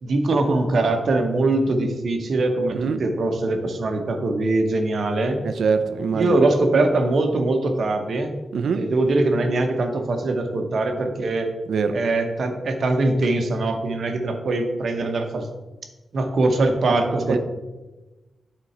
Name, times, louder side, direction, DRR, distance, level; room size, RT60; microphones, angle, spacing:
voice 1, 0.0-5.4 6.1-8.3 8.8-11.5 11.9-15.5 16.1-17.4, right 2 dB, 55° right, 5 dB, 0.8 m, -22 dB
voice 2, 5.4-6.4 8.5-8.8 11.7-12.0 17.3-17.4, right 5 dB, 70° right, 10 dB, 0.5 m, -23 dB
9.3 x 3.8 x 4.3 m, 1.1 s
wide cardioid pair, 165°, 0 cm